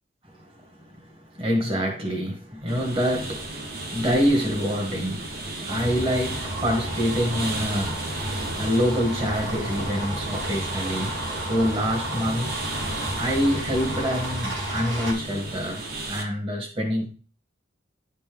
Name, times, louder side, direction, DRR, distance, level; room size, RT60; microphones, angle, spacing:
voice 1, 0.3-0.9 1.3-12.5 13.1-17.1, equal, 30° right, 1.6 m, -26 dB
sound 1, 2.7-16.2, right 2 dB, 50° right, 1.2 m, -34 dB
sound 2, 5.7-15.1, right 1 dB, 90° right, 3.0 m, -33 dB
10.5 x 4.3 x 3.5 m
head